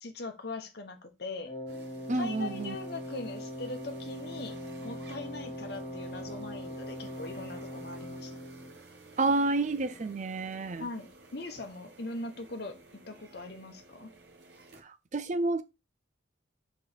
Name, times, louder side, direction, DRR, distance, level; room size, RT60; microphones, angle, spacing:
voice 1, 0.0-1.5 2.1-4.6 4.8-8.4 10.8-14.1, left 2 dB, 55° left, 1.0 m, -41 dB
Wind instrument woodwind instrument, 1.4-8.8, equal, 30° left, 2.5 m, -41 dB
sound 1, 1.7-14.8, right 1 dB, 55° right, 1.2 m, -53 dB
voice 2, 2.1-2.8 9.2-10.9 14.8-15.6, right 2 dB, 40° right, 0.5 m, -29 dB
4.5 x 4.2 x 5.0 m
head